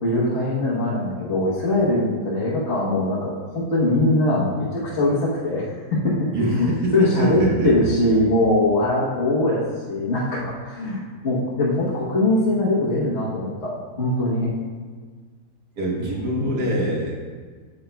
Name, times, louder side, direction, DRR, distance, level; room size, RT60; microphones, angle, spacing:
voice 1, 0.0-13.7 14.0-14.5 16.0-16.2, left 1 dB, 45° left, -7 dB, 1.4 m, -22 dB
voice 2, 6.3-7.7 15.8-17.1, right 1 dB, 85° right, -3 dB, 1.9 m, -23 dB
9.2 x 6.9 x 2.3 m, 1.5 s
omnidirectional pair, 1.7 m